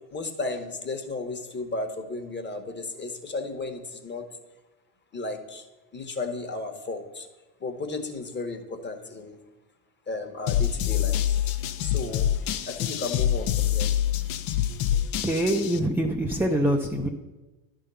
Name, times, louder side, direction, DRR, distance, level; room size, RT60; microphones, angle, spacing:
voice 1, 0.1-4.2 5.1-5.7 5.9-7.3 7.6-9.4 10.1-11.5 11.8-12.3 12.7-13.9, left 3 dB, 20° left, 6 dB, 1.1 m, -34 dB
sound 1, 10.5-15.8, left 10 dB, 70° left, 0.8 m, -26 dB
voice 2, 15.2-17.1, right 1 dB, 5° right, 2 dB, 0.4 m, -24 dB
11.0 x 3.7 x 6.8 m, 1.1 s
supercardioid pair, 95°, 48 cm